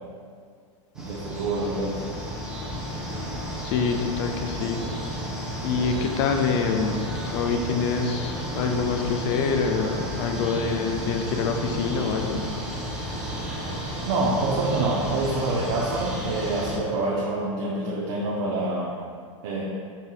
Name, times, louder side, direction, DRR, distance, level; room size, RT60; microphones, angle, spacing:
sound 1, 0.9-16.8, equal, 5° right, 0.7 m, -32 dB
voice 1, 1.0-2.0 14.0-19.0 19.4-19.6, right 2 dB, 60° right, -4 dB, 0.6 m, -26 dB
voice 2, 3.6-4.8 5.6-12.4, left 5 dB, 55° left, 5 dB, 0.5 m, -26 dB
5.4 x 2.7 x 2.4 m, 2.1 s
hypercardioid pair, 120°, 17 cm